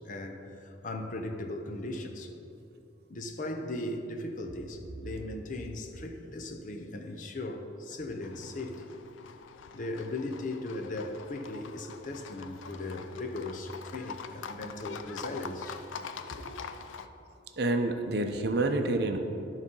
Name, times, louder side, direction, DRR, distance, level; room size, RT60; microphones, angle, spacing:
voice 1, 0.0-2.3 3.1-8.9 9.7-15.8 16.3-16.5, left 2 dB, 40° left, 0.6 m, -38 dB
Livestock farm animals working animals, 8.2-17.1, left 6 dB, 85° left, 0.4 m, -44 dB
voice 2, 17.6-19.2, right 2 dB, 55° right, 0.6 m, -28 dB
12.0 x 4.0 x 5.4 m
head